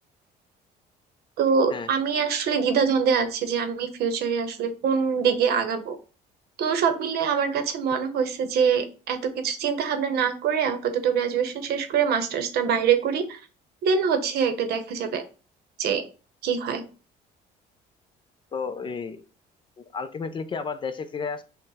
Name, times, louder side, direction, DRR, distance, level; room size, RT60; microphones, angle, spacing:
voice 1, 1.4-6.0 6.6-9.2 9.4-13.4 13.8-15.2 15.8-16.0 16.4-16.8, right 6 dB, 70° right, 7 dB, 0.7 m, -24 dB
voice 2, 18.5-19.3 19.8-21.4, left 5 dB, 30° left, 11 dB, 0.4 m, -32 dB
3.9 x 2.1 x 4.0 m, 0.35 s
cardioid pair, 110°, 17 cm